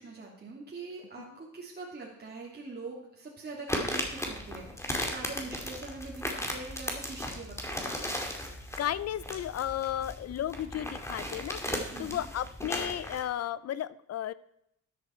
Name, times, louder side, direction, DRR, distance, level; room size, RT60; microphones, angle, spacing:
voice 1, 0.0-8.2 11.9-12.3, right 3 dB, 35° right, -3 dB, 2.6 m, -43 dB
sound 1, 3.7-13.2, equal, 10° left, 2.2 m, -36 dB
voice 2, 8.8-14.3, left 11 dB, 55° left, 18 dB, 0.6 m, -34 dB
13.0 x 8.5 x 4.4 m, 0.76 s
cardioid pair, 90°, 30 cm